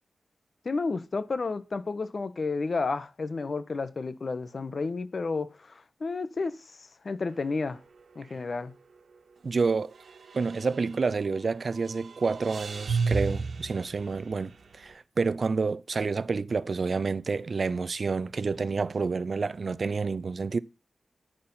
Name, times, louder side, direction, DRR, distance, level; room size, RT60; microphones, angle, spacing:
voice 1, 0.6-7.8 8.1-8.7, left 4 dB, 55° left, 1.3 m, -31 dB
sound 1, 7.3-7.7 8.0-8.1 9.9-11.4 11.7-14.7, right 4 dB, 75° right, 1.9 m, -33 dB
voice 2, 9.4-9.9 10.3-20.6, right 4 dB, 55° right, 0.6 m, -29 dB
10.5 x 7.0 x 5.6 m
wide cardioid pair, 80°, 0 cm